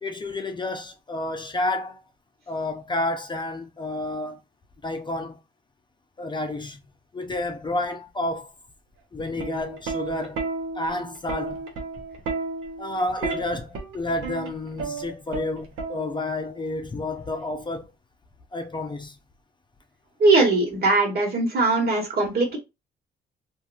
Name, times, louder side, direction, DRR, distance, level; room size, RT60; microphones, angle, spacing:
voice 1, 0.0-2.0 2.5-4.4 4.8-5.4 6.2-6.8 7.1-8.5 9.1-10.4 10.7-11.6 12.8-17.8 18.5-19.2, left 2 dB, 25° left, 0.5 m, -30 dB
Plucked string instrument, 9.2-16.4 17.5-17.8, right 3 dB, 90° right, 0.8 m, -33 dB
voice 2, 20.2-22.6, right 3 dB, 50° right, 1.4 m, -20 dB
2.8 x 2.5 x 2.4 m
cardioid pair, 90°, 20 cm